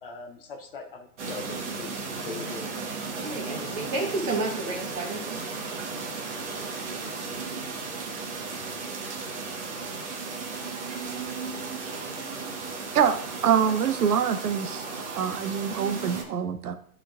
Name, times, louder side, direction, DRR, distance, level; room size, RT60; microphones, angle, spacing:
voice 1, 0.0-2.7, left 4 dB, 40° left, 4 dB, 0.6 m, -41 dB
sound 1, 1.2-16.2, right 4 dB, 50° right, 1.3 m, -35 dB
voice 2, 3.2-5.4, right 2 dB, 20° right, 0 dB, 1.2 m, -31 dB
voice 3, 12.9-14.8 15.2-16.8, right 7 dB, 75° right, 9 dB, 0.8 m, -25 dB
12.0 x 4.5 x 2.4 m, 0.62 s
hypercardioid pair, 160°, 45 cm